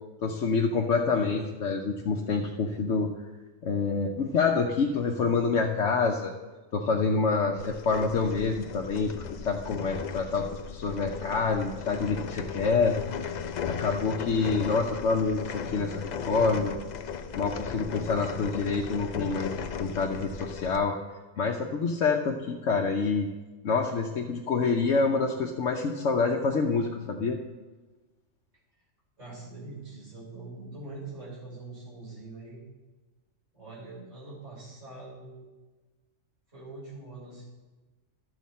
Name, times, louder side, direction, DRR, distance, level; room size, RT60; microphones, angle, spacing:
voice 1, 0.2-3.1 3.6-6.3 6.7-9.1 9.4-13.0 13.7-16.9 17.3-19.5 19.8-20.9 21.4-23.3 23.6-27.4, left 4 dB, 65° left, 0 dB, 1.1 m, -27 dB
sound 1, 7.6-20.8, left 7 dB, 85° left, 0.3 m, -36 dB
voice 2, 29.2-32.6 33.5-35.4 36.5-37.5, right 3 dB, 65° right, -6 dB, 4.6 m, -43 dB
12.5 x 7.5 x 4.2 m, 1.2 s
omnidirectional pair, 1.4 m